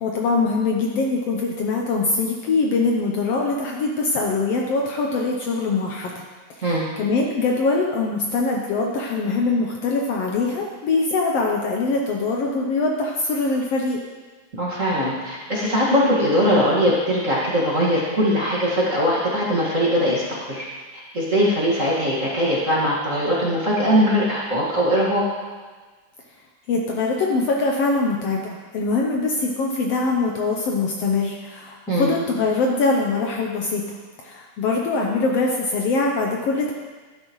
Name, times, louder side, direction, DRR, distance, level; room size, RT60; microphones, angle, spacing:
voice 1, 0.0-6.1 6.6-6.7 7.0-14.0 26.7-33.9 34.2-36.7, left 3 dB, 70° left, 0 dB, 1.7 m, -23 dB
voice 2, 14.6-20.2 20.5-20.7 21.1-25.3 31.9-32.1, equal, 30° right, -6 dB, 1.8 m, -20 dB
12.5 x 11.0 x 3.1 m, 1.4 s
omnidirectional pair, 3.4 m